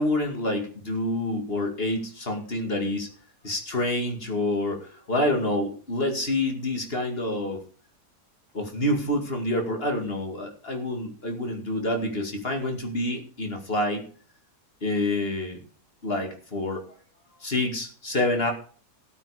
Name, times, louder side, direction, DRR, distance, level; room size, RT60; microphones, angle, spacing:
voice 1, 0.0-3.1 3.4-7.6 8.5-14.0 14.8-15.6 16.0-16.8 17.4-18.5, left 1 dB, 35° left, 4 dB, 2.4 m, -27 dB
14.0 x 9.1 x 5.0 m, 0.44 s
omnidirectional pair, 1.7 m